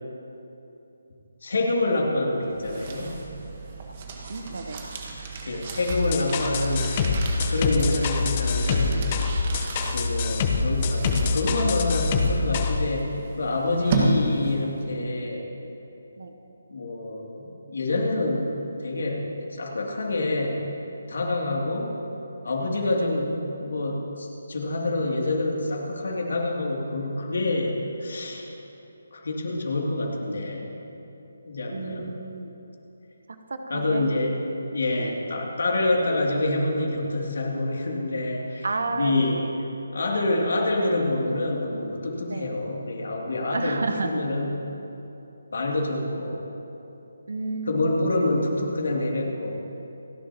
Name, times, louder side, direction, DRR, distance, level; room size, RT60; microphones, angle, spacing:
voice 1, 1.4-3.2 5.5-6.9 7.5-9.1 9.9-15.4 16.7-18.5 18.8-20.6 21.1-21.9 22.4-28.5 29.1-30.7 31.5-32.1 33.7-34.4 34.7-39.4 39.9-44.7 45.5-46.4 47.6-49.6, left 2 dB, 60° left, -1 dB, 2.8 m, -27 dB
sound 1, 2.3-14.8, right 2 dB, 35° right, 1.7 m, -33 dB
voice 2, 4.3-4.8 16.2-16.3 31.7-32.5 33.5-34.0 35.0-35.1 38.6-39.5 42.3-42.5 43.5-44.2 47.3-47.9 48.2-48.4, right 3 dB, 60° right, 6 dB, 1.1 m, -31 dB
sound 2, 5.9-12.8, left 4 dB, 30° left, 1.0 m, -25 dB
29.0 x 11.0 x 3.0 m, 3.0 s
figure-of-eight pair, 150°, 0 cm